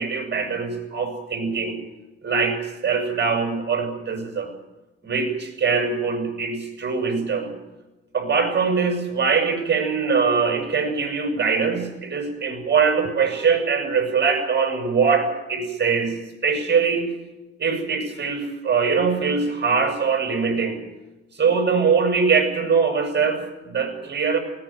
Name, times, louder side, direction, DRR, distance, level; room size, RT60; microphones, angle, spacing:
voice 1, 0.0-1.8 2.2-4.5 5.0-7.5 8.1-16.1 16.4-17.1 17.6-20.8 21.3-24.4, right 5 dB, 35° right, 5 dB, 7.5 m, -22 dB
19.5 x 18.5 x 9.1 m, 1.1 s
cardioid pair, 90°, 30 cm